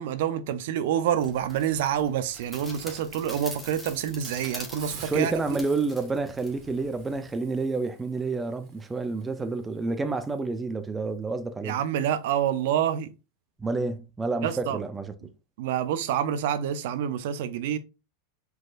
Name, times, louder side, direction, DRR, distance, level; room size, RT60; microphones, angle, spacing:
voice 1, 0.0-5.6 11.6-13.1 14.4-14.8 15.6-17.8, right 9 dB, 65° right, 0.6 m, -27 dB
sound 1, 1.2-7.2, left 1 dB, 5° left, 1.4 m, -44 dB
Hiss, 4.8-10.4, right 6 dB, 45° right, 1.8 m, -50 dB
voice 2, 5.0-11.8 13.6-15.1, right 3 dB, 10° right, 0.5 m, -29 dB
5.2 x 4.0 x 2.5 m
supercardioid pair, 135°, 0 cm